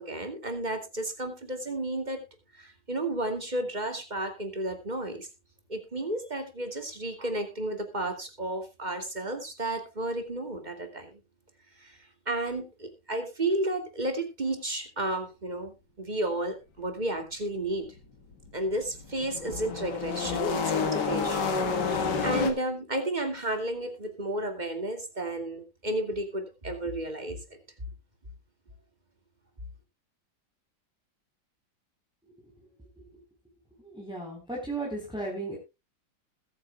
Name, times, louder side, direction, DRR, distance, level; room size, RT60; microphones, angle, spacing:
voice 1, 0.0-2.2 2.6-5.3 5.7-11.2 11.8-12.0 12.3-17.9 18.5-27.4, right 1 dB, 25° right, 6 dB, 2.4 m, -32 dB
sound 1, 18.4-22.5, left 5 dB, 80° left, 2.2 m, -29 dB
voice 2, 33.8-35.6, right 2 dB, 5° right, -2 dB, 4.1 m, -35 dB
20.5 x 8.7 x 2.3 m, 0.25 s
omnidirectional pair, 1.8 m